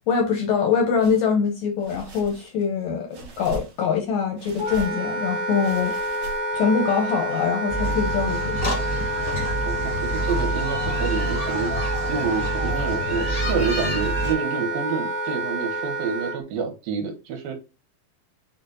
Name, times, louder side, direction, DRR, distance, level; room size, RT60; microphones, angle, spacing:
voice 1, 0.1-6.0 6.5-8.8, left 6 dB, 80° left, 1.6 m, -23 dB
sound 1, 1.0-1.3 1.8-2.7 3.1-4.0 4.4-5.1 5.5-6.7, right 4 dB, 60° right, 1.5 m, -40 dB
Wind instrument woodwind instrument, 4.6-16.4, right 1 dB, 25° right, 0.9 m, -28 dB
sound 2, 7.7-14.3, right 1 dB, 55° left, 0.8 m, -28 dB
voice 2, 9.7-11.8 12.1-17.6, right 6 dB, 75° right, 2.6 m, -28 dB
6.1 x 2.2 x 3.8 m
omnidirectional pair, 4.2 m